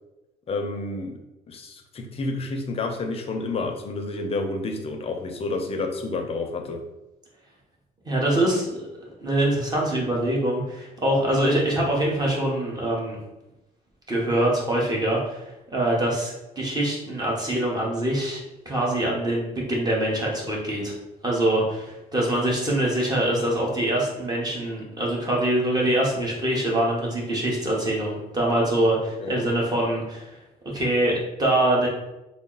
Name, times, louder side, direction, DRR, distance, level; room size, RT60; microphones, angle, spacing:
voice 1, 0.5-6.8 29.2-29.5, left 3 dB, 35° left, 4 dB, 0.6 m, -30 dB
voice 2, 8.0-8.9 9.2-13.2 14.1-15.4 15.7-21.0 21.2-30.4 30.7-31.9, right 1 dB, 25° right, -3 dB, 1.1 m, -24 dB
3.8 x 2.0 x 3.9 m, 0.97 s
cardioid pair, 110°, 17 cm